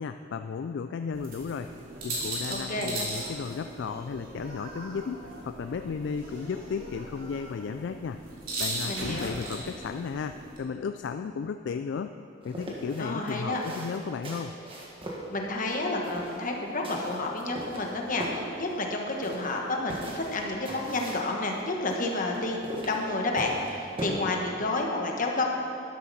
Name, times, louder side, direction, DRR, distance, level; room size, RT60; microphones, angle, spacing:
voice 1, 0.0-8.2 8.6-12.2 12.4-14.5, left 5 dB, 60° left, 9 dB, 0.3 m, -34 dB
sound 1, 1.1-10.6, right 1 dB, 45° right, 3.0 m, -38 dB
voice 2, 2.5-3.0 8.9-9.4 13.0-13.6 15.3-25.4, left 2 dB, 45° left, 1 dB, 1.4 m, -30 dB
sound 2, 9.0-10.9, right 1 dB, 65° right, 1.8 m, -41 dB
sound 3, 12.4-24.1, right 1 dB, 30° right, 1.7 m, -40 dB
12.5 x 11.5 x 4.2 m, 2.7 s
head